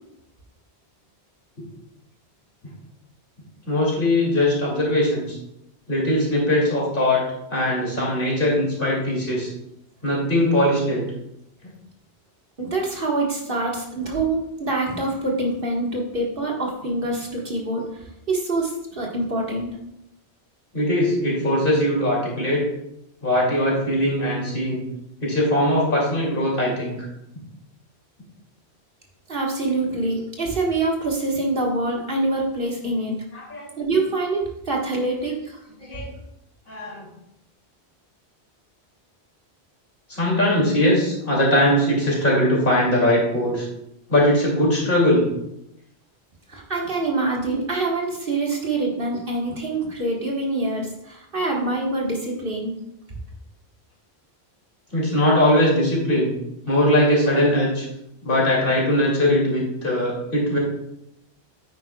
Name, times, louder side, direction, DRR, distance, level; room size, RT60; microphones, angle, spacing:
voice 1, 3.6-5.4 5.9-7.2 7.5-9.5 10.0-11.1 11.6-11.7 20.7-22.6 23.2-24.8 25.2-27.1 33.3-33.7 35.8-36.1 36.7-37.0 40.1-43.7 44.1-45.3 54.9-56.3 56.7-57.8 58.2-60.6, left 1 dB, 55° left, -3 dB, 2.9 m, -20 dB
voice 2, 12.6-19.7 29.3-33.2 33.8-35.6 46.5-52.8 53.1-53.2, right 2 dB, 55° right, -1 dB, 1.8 m, -25 dB
9.4 x 9.2 x 2.3 m, 0.82 s
omnidirectional pair, 1.1 m